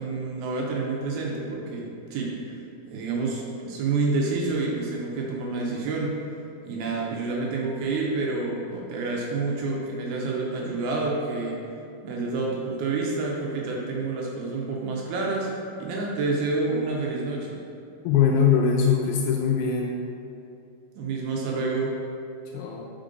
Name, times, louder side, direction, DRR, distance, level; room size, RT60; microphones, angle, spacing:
voice 1, 0.0-2.6 2.9-6.1 6.6-11.6 12.0-15.5 15.8-17.6 21.0-22.0, right 3 dB, 85° right, -2 dB, 2.6 m, -28 dB
voice 2, 18.0-20.0 22.5-22.9, left 7 dB, 85° left, -1 dB, 2.5 m, -22 dB
5.3 x 5.2 x 3.9 m, 2.7 s
omnidirectional pair, 4.5 m